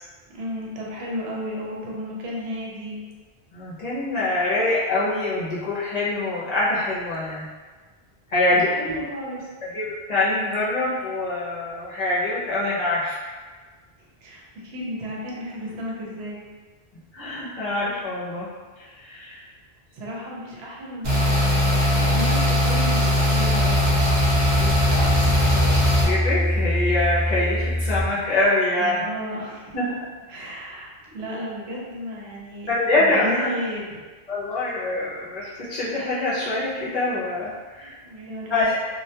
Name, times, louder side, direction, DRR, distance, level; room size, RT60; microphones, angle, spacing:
voice 1, 0.3-3.0 8.5-9.5 14.2-16.4 19.9-24.0 24.6-25.7 28.8-29.9 30.3-32.7 33.0-34.0 37.8-38.6, equal, 90° right, -4 dB, 0.9 m, -33 dB
voice 2, 3.5-7.5 8.3-8.9 9.6-13.2 17.1-18.5 18.8-19.5 26.0-29.0 29.7-29.9 31.2-31.3 32.7-33.5 34.3-37.9 38.5-38.8, left 2 dB, 50° left, -8 dB, 0.6 m, -24 dB
sound 1, 21.0-26.0, left 1 dB, 50° right, 0.8 m, -20 dB
sound 2, 23.4-28.4, left 1 dB, ahead, 0.8 m, -25 dB
2.2 x 2.1 x 2.7 m, 1.4 s
omnidirectional pair, 1.0 m